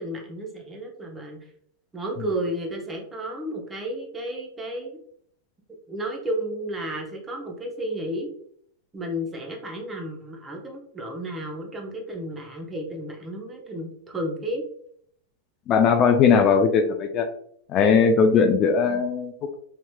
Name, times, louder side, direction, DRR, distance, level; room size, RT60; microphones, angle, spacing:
voice 1, 0.0-1.4 1.9-5.0 5.9-8.3 8.9-14.6 16.3-16.6 18.8-19.0, right 1 dB, 15° right, 1 dB, 0.8 m, -32 dB
voice 2, 15.7-17.3 17.7-19.5, left 6 dB, 40° left, 6 dB, 0.4 m, -19 dB
3.2 x 2.8 x 2.2 m, 0.65 s
hypercardioid pair, 120°, 0 cm